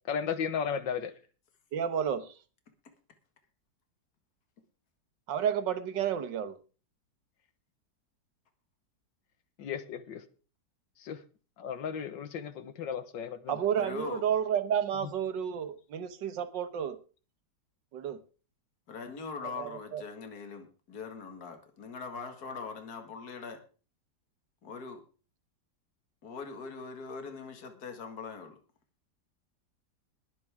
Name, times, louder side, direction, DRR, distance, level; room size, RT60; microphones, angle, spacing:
voice 1, 0.1-1.1 9.6-10.2 11.0-11.2 11.6-13.6 15.0-15.1, left 7 dB, 80° left, 1.8 m, -35 dB
voice 2, 1.7-2.3 5.3-6.6 13.5-17.0 17.9-18.2 19.4-20.0, right 8 dB, 75° right, 1.8 m, -31 dB
voice 3, 13.7-14.3 18.9-23.6 24.6-25.0 26.2-28.6, left 5 dB, 55° left, 2.4 m, -41 dB
21.0 x 8.5 x 3.5 m
omnidirectional pair, 2.0 m